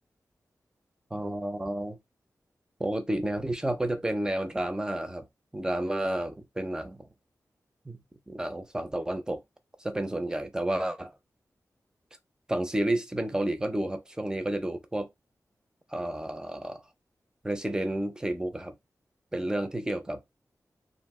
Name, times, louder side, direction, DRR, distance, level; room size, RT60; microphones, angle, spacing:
voice 1, 1.1-2.0 2.8-5.3 5.5-7.1 7.9-9.4 9.8-11.1 12.5-15.1 15.9-16.8 17.4-18.8 19.3-20.2, right 1 dB, 10° right, 0.5 m, -31 dB
2.5 x 2.1 x 3.5 m
wide cardioid pair, 85°, 6 cm